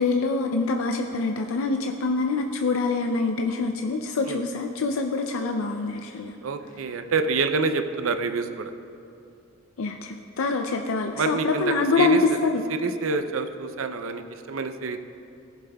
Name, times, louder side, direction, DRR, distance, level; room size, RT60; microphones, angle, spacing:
voice 1, 0.0-6.3 9.8-12.6, left 4 dB, 90° left, 3 dB, 0.5 m, -25 dB
voice 2, 6.4-8.7 11.1-12.4 12.7-15.0, right 4 dB, 75° right, 8 dB, 0.5 m, -27 dB
17.5 x 7.4 x 2.3 m, 2.6 s
head